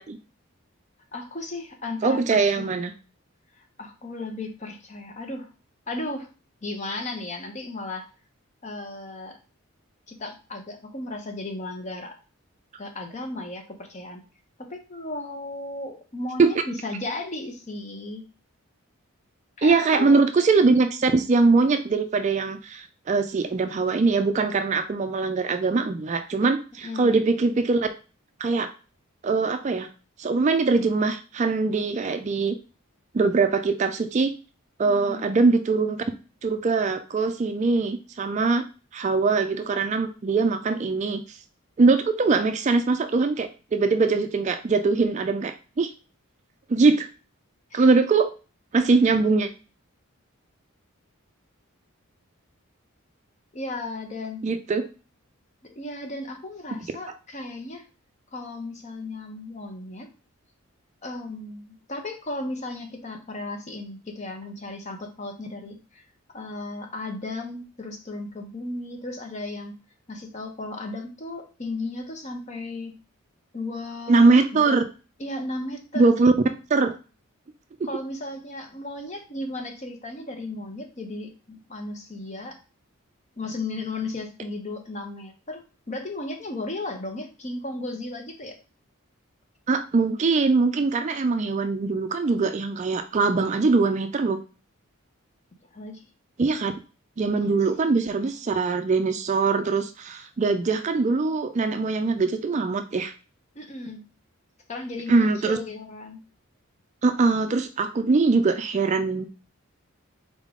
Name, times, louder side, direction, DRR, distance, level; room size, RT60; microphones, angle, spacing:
voice 1, 1.1-2.8 3.6-5.5 5.9-6.3 6.6-8.0 8.6-9.4 10.1-12.1 12.8-14.2 14.7-18.2 19.6-20.2 26.8-27.2 34.9-35.2 47.7-47.9 53.5-54.4 55.8-57.8 58.3-60.1 61.0-66.0 66.3-69.8 70.1-72.9 73.5-74.8 75.2-76.1 77.8-82.6 83.4-85.6 85.9-88.6 95.7-96.0 97.4-97.5 103.5-104.0 104.7-106.2, left 2 dB, 35° left, 4 dB, 0.8 m, -35 dB
voice 2, 2.0-2.9 16.4-16.5 19.6-27.9 28.4-28.7 29.2-29.9 30.2-32.6 33.1-34.3 34.8-36.0 36.4-38.6 38.9-41.2 41.8-45.9 46.7-47.1 47.7-48.3 48.7-49.5 54.4-54.8 74.1-74.8 76.0-76.3 76.7-76.9 89.7-94.4 96.4-96.7 97.2-103.1 105.1-105.6 107.0-109.3, right 4 dB, 35° right, 8 dB, 0.3 m, -22 dB
4.0 x 3.6 x 3.6 m, 0.34 s
head